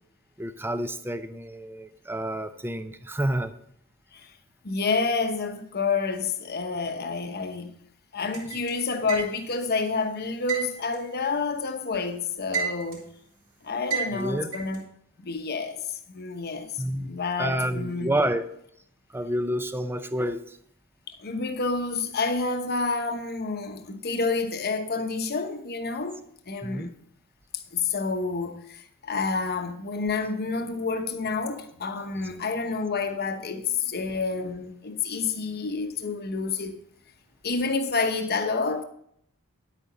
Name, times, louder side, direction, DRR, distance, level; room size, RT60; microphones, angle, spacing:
voice 1, 0.4-3.5 14.1-14.5 16.8-17.1 17.4-18.5 19.1-20.6 26.6-26.9, right 1 dB, 10° right, 0.6 m, -29 dB
voice 2, 4.6-7.7 8.1-13.1 13.6-14.8 15.2-18.1 21.1-26.2 26.5-26.9 27.7-36.8 37.4-38.8, left 4 dB, 45° left, 1.0 m, -29 dB
sound 1, 8.3-9.6 10.5-11.9 12.2-13.1 13.9-14.8, right 6 dB, 50° right, 3.4 m, -31 dB
10.5 x 8.5 x 4.1 m
head